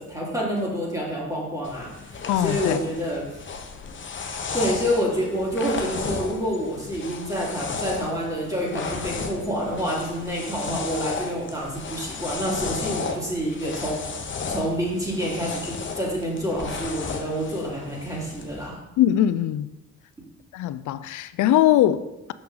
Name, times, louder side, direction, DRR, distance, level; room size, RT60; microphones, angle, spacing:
voice 1, 0.0-3.4 4.5-14.0 14.3-18.8, equal, 10° right, 2.6 m, -28 dB
sound 1, 1.6-18.7, left 5 dB, 40° left, 1.0 m, -34 dB
voice 2, 2.3-2.8 19.0-19.7 20.5-22.3, left 12 dB, 75° left, 0.5 m, -21 dB
6.7 x 5.6 x 3.9 m
cardioid pair, 90°, 30 cm